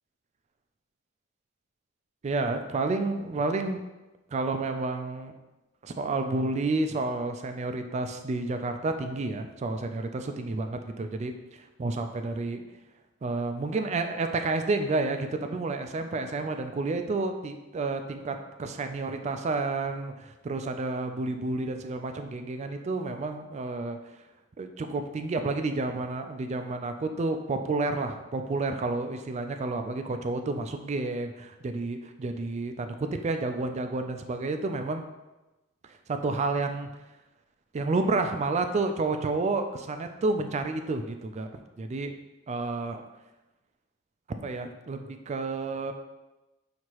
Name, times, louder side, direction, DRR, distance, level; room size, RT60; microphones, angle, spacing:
voice 1, 2.2-3.8 4.3-5.3 5.8-12.6 13.2-24.0 24.6-35.1 36.1-36.9 37.7-41.5 41.8-42.1 42.5-43.0 44.4-45.9, right 3 dB, 35° right, 7 dB, 0.3 m, -30 dB
6.2 x 2.8 x 2.9 m, 1.0 s
head